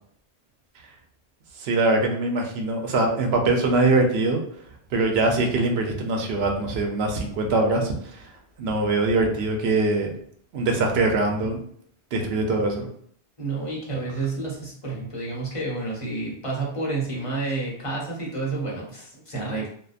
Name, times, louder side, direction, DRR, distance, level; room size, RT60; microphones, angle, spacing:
voice 1, 1.6-4.4 4.9-8.3 8.6-10.1 10.5-11.6 12.1-12.9, right 2 dB, 75° right, 2 dB, 0.8 m, -23 dB
voice 2, 13.4-19.7, right 3 dB, 35° left, -4 dB, 0.8 m, -30 dB
2.7 x 2.1 x 2.4 m, 0.62 s
omnidirectional pair, 1.1 m